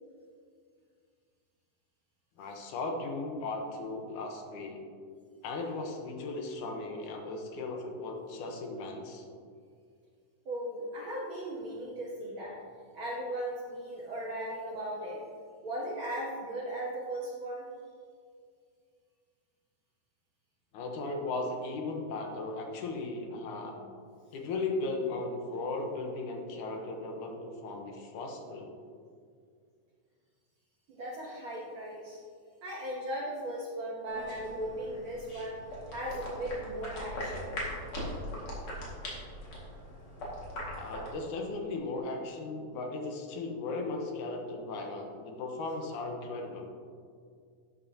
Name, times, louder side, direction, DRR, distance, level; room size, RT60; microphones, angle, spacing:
voice 1, 2.4-4.9 5.4-9.3 20.7-23.8 24.3-28.8 40.8-46.7, left 3 dB, 80° left, 3 dB, 2.4 m, -37 dB
voice 2, 10.4-12.6 12.9-15.2 15.6-17.7 30.9-32.2 32.6-35.6 35.9-37.6, right 1 dB, 55° right, -4 dB, 1.5 m, -37 dB
sound 1, 34.1-41.2, left 1 dB, 45° left, 2.7 m, -40 dB
12.0 x 8.8 x 2.8 m, 2.2 s
omnidirectional pair, 3.6 m